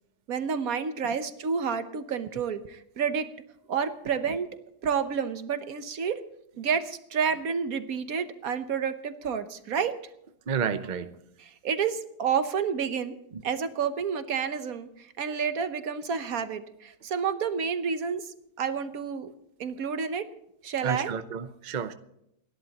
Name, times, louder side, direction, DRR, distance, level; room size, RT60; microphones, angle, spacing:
voice 1, 0.3-3.3 3.7-4.5 4.8-6.2 6.6-10.0 11.6-13.1 13.4-14.9 15.2-18.3 18.6-19.3 19.6-20.3 20.6-21.1, right 6 dB, 65° right, 10 dB, 1.4 m, -29 dB
voice 2, 10.5-11.2 13.3-13.4 20.8-21.9, right 7 dB, 40° right, 10 dB, 0.7 m, -31 dB
29.0 x 11.5 x 3.0 m, 0.80 s
omnidirectional pair, 1.7 m